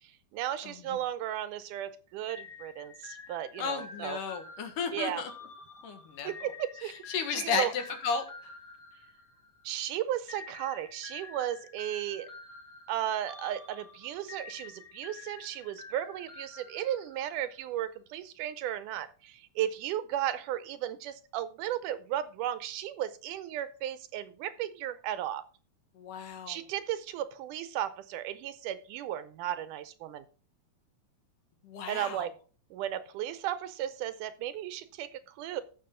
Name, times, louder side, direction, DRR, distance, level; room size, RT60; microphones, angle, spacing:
voice 1, 0.0-4.2 4.9-5.2 6.2-6.9 7.3-7.7 9.6-12.3 12.9-25.4 26.5-30.2 31.9-32.3 32.7-35.6, right 11 dB, 75° right, 13 dB, 2.1 m, -35 dB
voice 2, 0.6-1.0 3.6-5.3 5.8-6.3 7.1-8.5 26.0-26.6 31.6-32.3, left 6 dB, 75° left, 6 dB, 3.0 m, -34 dB
sound 1, 2.3-9.7 10.3-17.5, left 4 dB, 45° left, 2.1 m, -49 dB
14.5 x 6.1 x 3.7 m, 0.37 s
omnidirectional pair, 3.9 m